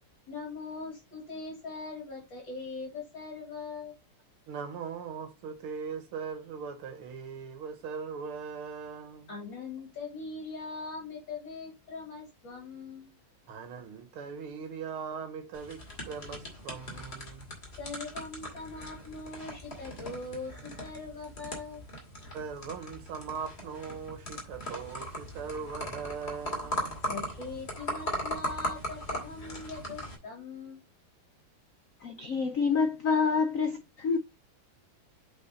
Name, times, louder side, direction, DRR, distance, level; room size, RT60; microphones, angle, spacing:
voice 1, 0.3-3.9 9.3-13.2 17.8-21.8 27.1-30.8, left 4 dB, 60° left, 3.1 m, -41 dB
voice 2, 4.5-9.3 13.5-17.5 22.3-27.0, right 6 dB, 80° right, 2.1 m, -40 dB
sound 1, 15.5-30.1, equal, 30° left, 2.5 m, -39 dB
voice 3, 32.0-34.2, left 5 dB, 75° left, 0.7 m, -27 dB
7.9 x 4.7 x 4.1 m
omnidirectional pair, 2.4 m